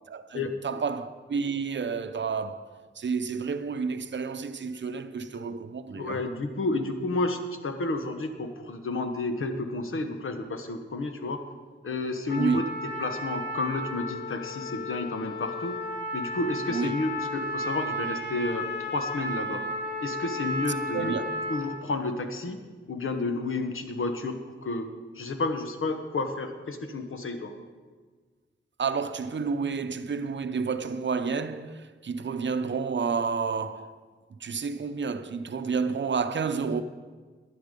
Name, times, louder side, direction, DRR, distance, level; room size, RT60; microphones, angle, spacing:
voice 1, 0.1-2.7 3.0-6.2 12.4-12.6 16.7-16.9 20.9-21.3 28.8-34.0 34.4-36.8, right 5 dB, 60° right, 0.6 m, -30 dB
voice 2, 6.0-11.4 11.8-12.6 13.0-15.7 16.1-19.6 20.0-21.1 21.5-22.6 22.9-24.3 24.6-24.9 25.1-27.6, left 2 dB, 80° left, 1.1 m, -31 dB
Trumpet, 12.3-21.8, left 1 dB, 55° left, 2.3 m, -34 dB
11.5 x 11.0 x 5.2 m
wide cardioid pair, 95°, 21 cm